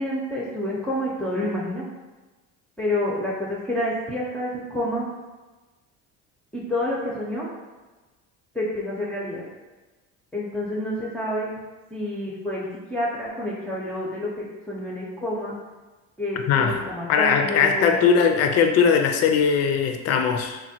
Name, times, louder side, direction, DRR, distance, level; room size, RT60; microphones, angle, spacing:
voice 1, 0.0-1.9 2.8-5.1 6.5-7.5 8.5-9.4 10.3-11.5 11.9-15.5 16.2-18.0, left 1 dB, 5° left, -7 dB, 0.6 m, -28 dB
voice 2, 16.5-16.8 17.1-20.6, left 6 dB, 50° left, 6 dB, 0.4 m, -20 dB
3.2 x 2.2 x 2.7 m, 1.2 s
supercardioid pair, 90°, 32 cm